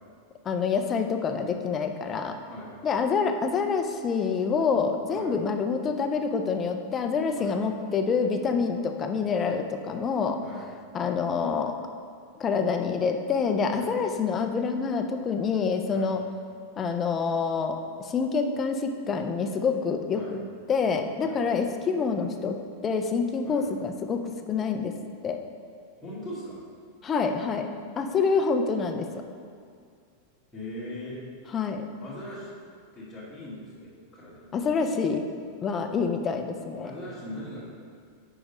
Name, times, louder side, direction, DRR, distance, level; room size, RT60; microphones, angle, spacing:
voice 1, 0.4-2.3 2.8-10.4 10.9-11.8 12.4-16.2 16.8-20.4 20.7-22.6 22.8-24.9 25.2-25.4 27.0-27.7 28.0-29.0 31.5-31.8 34.5-35.2 35.6-36.9, left 5 dB, 20° left, 5 dB, 0.4 m, -27 dB
voice 2, 26.0-26.6 30.5-31.2 32.0-32.5 32.9-34.5 36.8-37.7, left 1 dB, 5° left, -12 dB, 1.3 m, -40 dB
5.0 x 4.9 x 5.3 m, 2.3 s
supercardioid pair, 170°, 0 cm